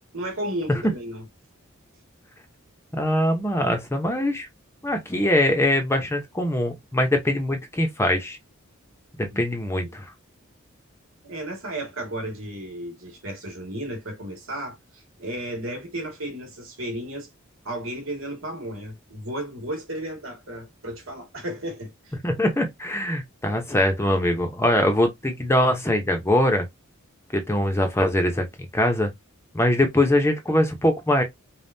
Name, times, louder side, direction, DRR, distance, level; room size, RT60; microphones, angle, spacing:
voice 1, 0.1-1.2 9.3-9.4 9.8-10.0 11.2-17.3 17.6-22.1, right 1 dB, 70° right, 1.9 m, -34 dB
voice 2, 2.9-4.5 4.8-8.4 9.2-10.1 22.2-26.7 27.3-29.1 29.5-31.2, left 1 dB, 15° left, 0.8 m, -22 dB
5.3 x 2.4 x 2.7 m
head